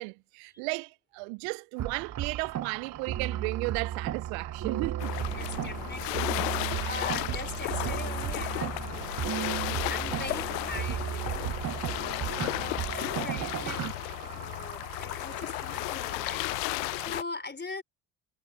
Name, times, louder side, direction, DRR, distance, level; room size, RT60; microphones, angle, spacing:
voice 1, 0.0-5.1 6.7-7.0, right 32 dB, 70° right, 0.6 m, -35 dB
sound 1, 1.8-13.9, right 11 dB, 35° right, 0.8 m, -35 dB
sound 2, 1.8-17.1, right 12 dB, 90° right, 3.6 m, -46 dB
sound 3, 5.0-17.2, left 30 dB, 75° left, 0.6 m, -34 dB
voice 2, 5.3-9.5 9.9-11.4 11.9-13.9 14.2-17.8, left 3 dB, 20° left, 4.2 m, -42 dB
hypercardioid pair, 55°, 50 cm